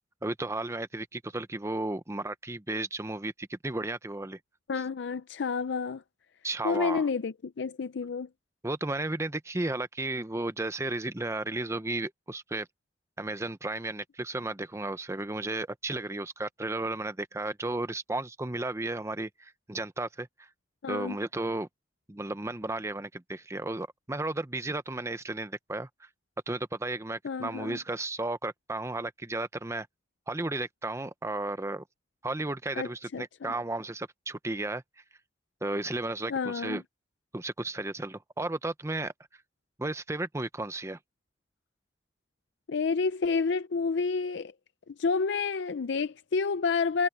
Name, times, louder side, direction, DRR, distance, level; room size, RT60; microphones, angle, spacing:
voice 1, 0.2-4.4 6.4-7.1 8.6-12.7 13.2-20.5 20.9-21.7 22.1-25.9 26.5-29.9 30.3-31.8 32.2-34.8 35.6-36.8 37.3-39.1 39.8-41.0, right 2 dB, 15° right, 0.7 m, -34 dB
voice 2, 4.7-6.0 6.6-8.3 20.8-21.2 27.2-27.8 32.8-33.5 36.3-36.8 42.7-44.5 44.9-47.1, left 4 dB, 75° left, 0.5 m, -29 dB
head